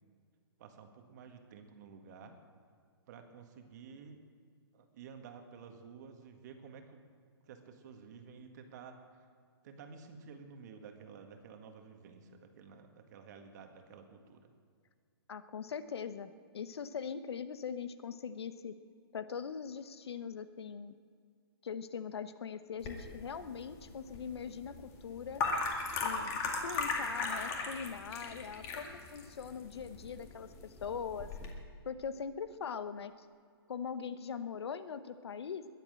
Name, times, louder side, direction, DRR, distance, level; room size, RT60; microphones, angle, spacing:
voice 1, 0.6-2.4 3.1-4.2 4.7-7.0 7.4-9.3 9.6-14.5, right 6 dB, 45° right, 5 dB, 1.8 m, -52 dB
voice 2, 15.3-18.7 19.1-20.9 21.6-25.4 26.0-31.3 31.8-33.1 33.7-35.6, left 6 dB, 80° left, 12 dB, 1.0 m, -41 dB
sound 1, 22.8-31.5, left 4 dB, 25° left, 2.0 m, -38 dB
21.5 x 7.8 x 7.6 m, 2.1 s
hypercardioid pair, 155°, 13 cm